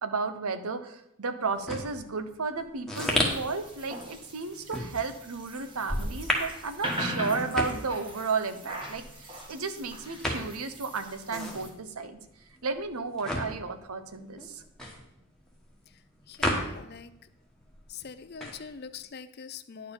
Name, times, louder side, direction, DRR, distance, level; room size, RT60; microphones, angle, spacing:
voice 1, 0.0-12.2 12.6-14.6, right 4 dB, 90° right, 9 dB, 0.9 m, -33 dB
sound 1, 1.4-17.2 17.4-19.0, left 1 dB, ahead, 1.3 m, -34 dB
sound 2, 3.0-11.7, equal, 25° right, 1.6 m, -40 dB
voice 2, 16.3-17.1 17.9-19.9, left 6 dB, 50° left, 13 dB, 0.5 m, -43 dB
9.9 x 4.7 x 6.9 m, 0.83 s
head